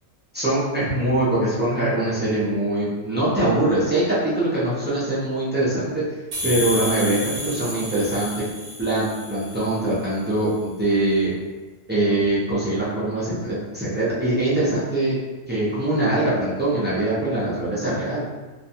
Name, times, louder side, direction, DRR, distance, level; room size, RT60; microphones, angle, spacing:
voice 1, 0.3-6.0 6.4-7.2 7.4-8.4 8.8-11.3 11.9-15.2 15.5-18.3, right 1 dB, 15° right, -10 dB, 0.4 m, -22 dB
sound 1, 6.3-9.9, left 1 dB, 60° right, 0.9 m, -31 dB
2.5 x 2.3 x 2.7 m, 1.2 s
omnidirectional pair, 1.4 m